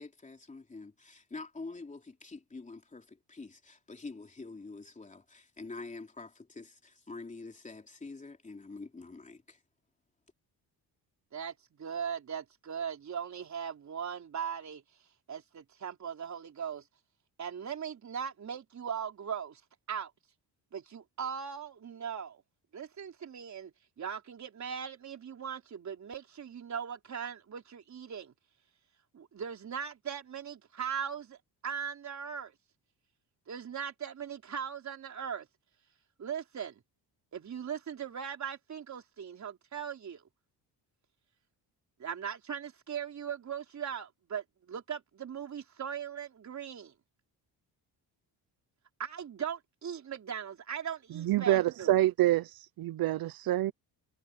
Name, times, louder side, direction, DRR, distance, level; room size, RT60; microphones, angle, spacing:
voice 1, 0.0-9.6, left 3 dB, 20° left, 3.4 m, -46 dB
voice 2, 11.3-14.8 15.3-16.8 17.4-19.6 19.9-20.1 20.7-22.4 22.7-23.7 24.0-28.3 29.1-31.4 31.6-32.5 33.5-35.5 36.2-36.8 37.3-40.2 42.0-46.9 49.0-52.0, right 7 dB, 45° right, 4.0 m, -39 dB
voice 3, 51.1-52.5 52.8-53.7, right 14 dB, 60° right, 0.8 m, -26 dB
cardioid pair, 135°, 40 cm